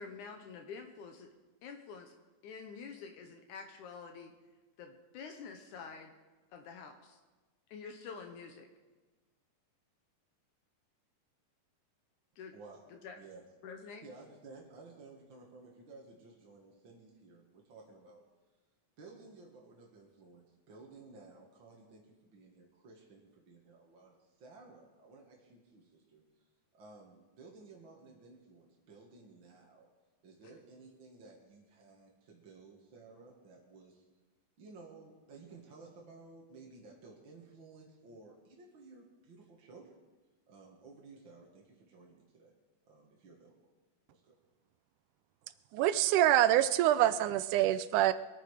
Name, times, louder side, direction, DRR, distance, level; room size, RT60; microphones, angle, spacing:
voice 1, 0.0-1.3 1.6-2.2 2.4-4.3 4.8-6.1 6.5-7.2 7.7-8.7 12.4-12.6 12.9-13.2 13.6-14.0, left 5 dB, 75° left, 5 dB, 2.4 m, -47 dB
voice 2, 14.0-18.2 19.0-26.4 26.7-29.9 30.2-34.1 34.6-40.0 40.5-42.5 42.9-43.6 44.1-44.3, right 3 dB, 45° right, -2 dB, 2.1 m, -55 dB
voice 3, 45.7-48.1, right 13 dB, 80° right, 14 dB, 2.0 m, -26 dB
23.5 x 9.2 x 4.9 m, 1.2 s
omnidirectional pair, 3.7 m